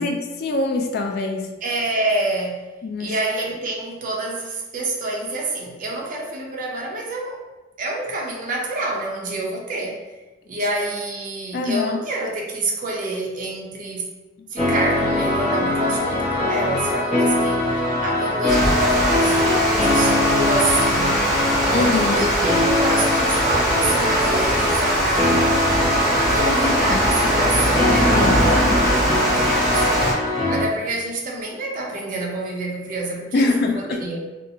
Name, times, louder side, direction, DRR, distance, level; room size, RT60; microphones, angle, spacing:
voice 1, 0.0-1.5 2.8-3.1 11.5-12.0 21.7-22.2 26.4-27.0 28.1-28.4 33.3-34.0, left 3 dB, 60° left, 3 dB, 0.3 m, -23 dB
voice 2, 1.6-2.7 3.0-7.4 7.8-10.0 10.5-14.1 14.5-17.6 18.0-21.2 21.6-25.6 26.3-30.0 30.5-34.2, right 2 dB, 45° right, -1 dB, 0.5 m, -27 dB
sound 1, 14.6-30.7, left 1 dB, 30° left, 0.9 m, -22 dB
Water, 18.5-30.1, right 1 dB, 5° right, 0.9 m, -21 dB
2.7 x 2.4 x 2.6 m, 1.2 s
head